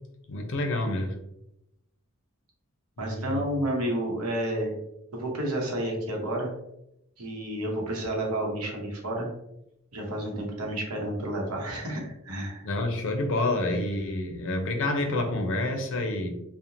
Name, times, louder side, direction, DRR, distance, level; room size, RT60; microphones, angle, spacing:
voice 1, 0.3-1.2 3.0-3.4 12.6-16.3, left 2 dB, 60° left, 4 dB, 0.5 m, -28 dB
voice 2, 3.0-4.8 5.1-6.5 7.2-9.3 9.9-12.6, right 1 dB, 85° right, 0 dB, 0.8 m, -30 dB
2.9 x 2.1 x 2.5 m, 0.83 s
head